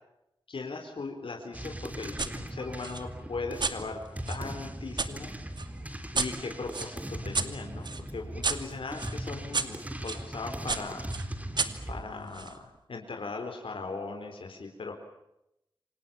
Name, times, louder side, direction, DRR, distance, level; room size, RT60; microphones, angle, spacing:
voice 1, 0.5-4.0 4.3-5.3 6.1-11.0 11.9-14.9, left 3 dB, 85° left, 4 dB, 4.2 m, -39 dB
sound 1, 1.5-12.0, right 1 dB, 15° right, 3.5 m, -39 dB
sound 2, 2.2-2.3 2.8-5.1 5.6-10.2 10.7-12.6, right 4 dB, 60° right, 2.4 m, -34 dB
28.5 x 27.0 x 7.1 m, 0.85 s
wide cardioid pair, 100°, 9 cm